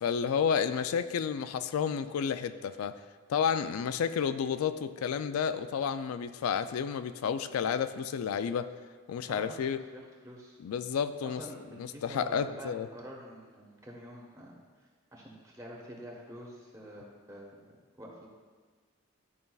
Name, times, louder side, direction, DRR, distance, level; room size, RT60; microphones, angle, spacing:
voice 1, 0.0-3.0 3.3-8.7 9.1-9.8 10.6-11.4 11.8-12.9, left 7 dB, 90° left, 11 dB, 0.3 m, -31 dB
voice 2, 9.3-10.6 11.2-14.5 15.1-17.5 18.0-18.3, equal, 15° right, -3 dB, 1.1 m, -47 dB
11.0 x 5.2 x 2.3 m, 1.5 s
head